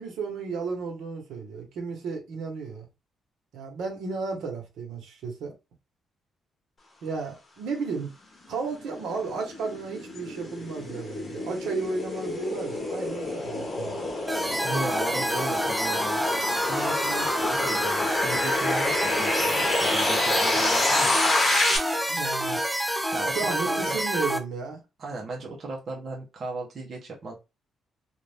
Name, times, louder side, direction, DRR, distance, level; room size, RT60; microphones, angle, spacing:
voice 1, 0.0-2.9 3.5-5.6 7.0-8.1 8.5-14.0 22.1-22.6 23.3-24.8, right 4 dB, 85° right, 1.2 m, -33 dB
sound 1, 8.6-21.8, left 2 dB, 25° left, 0.9 m, -28 dB
sound 2, 14.3-24.4, equal, ahead, 0.3 m, -28 dB
voice 2, 14.6-16.2 16.7-21.2 23.1-24.0 25.0-27.3, right 3 dB, 35° right, 0.8 m, -36 dB
2.6 x 2.5 x 3.4 m
cardioid pair, 175°, 0 cm